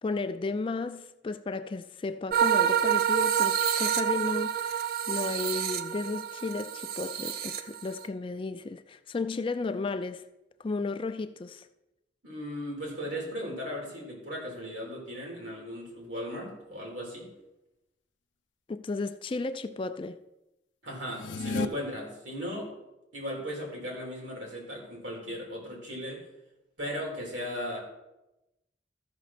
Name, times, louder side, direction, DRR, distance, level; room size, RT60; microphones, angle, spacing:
voice 1, 0.0-10.3 10.6-11.7 18.7-20.2, left 3 dB, 30° left, 0.3 m, -34 dB
sound 1, 2.3-8.0, right 9 dB, 50° right, 0.5 m, -28 dB
voice 2, 12.2-17.3 20.8-22.7 23.1-26.2 26.8-27.8, equal, 85° right, 3.5 m, -37 dB
sound 2, 21.0-21.7, left 3 dB, 90° left, 0.5 m, -31 dB
14.0 x 6.0 x 4.2 m
head